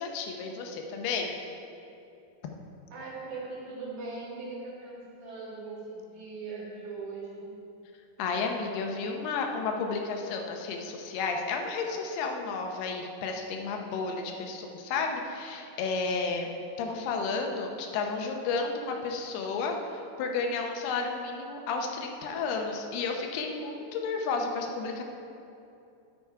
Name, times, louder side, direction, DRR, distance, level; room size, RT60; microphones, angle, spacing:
voice 1, 0.0-1.4 8.2-16.5 16.8-25.0, left 4 dB, 85° left, 3 dB, 2.8 m, -32 dB
voice 2, 2.9-7.5, right 3 dB, 55° right, -7 dB, 2.9 m, -40 dB
11.5 x 6.9 x 4.6 m, 2.6 s
omnidirectional pair, 4.5 m